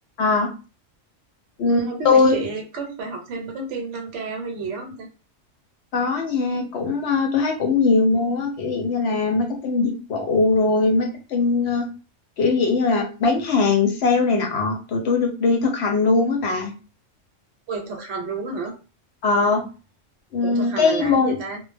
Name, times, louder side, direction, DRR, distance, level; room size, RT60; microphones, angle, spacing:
voice 1, 0.2-0.5 1.6-2.4 5.9-11.9 12.4-16.7 19.2-19.6 20.3-21.4, left 4 dB, 65° left, 3 dB, 0.8 m, -20 dB
voice 2, 1.7-5.1 17.7-18.7 20.4-21.6, right 4 dB, 70° right, 1 dB, 0.9 m, -30 dB
2.2 x 2.0 x 3.2 m, 0.33 s
omnidirectional pair, 1.3 m